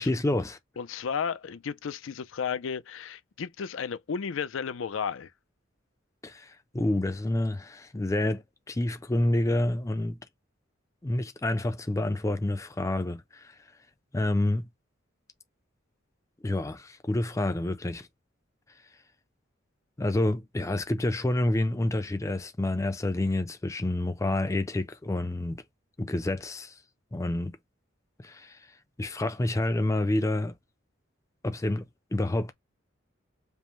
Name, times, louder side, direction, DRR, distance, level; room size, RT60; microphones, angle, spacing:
voice 1, 0.0-0.6 6.2-10.2 11.0-13.5 14.1-14.7 16.4-18.1 20.0-25.6 26.0-26.7 27.1-27.6 28.2-28.6 29.0-30.5 31.4-31.9 32.1-32.5, left 1 dB, 15° left, 0.4 m, -28 dB
voice 2, 0.8-5.3, left 6 dB, 80° left, 0.5 m, -33 dB
5.2 x 2.1 x 3.0 m
head